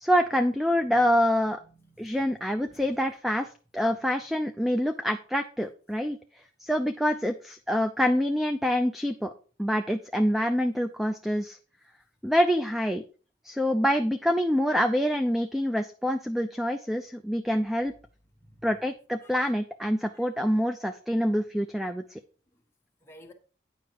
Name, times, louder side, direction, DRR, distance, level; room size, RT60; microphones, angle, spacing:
voice 1, 0.0-1.6 2.0-6.2 6.6-9.3 9.6-11.6 12.2-13.0 13.4-17.9 18.6-22.2, equal, ahead, 0.4 m, -26 dB
voice 2, 1.4-2.4 2.6-2.8 18.4-18.7 19.2-19.5 20.1-20.2 23.0-23.3, equal, 15° left, 1.4 m, -55 dB
9.3 x 5.8 x 4.6 m
head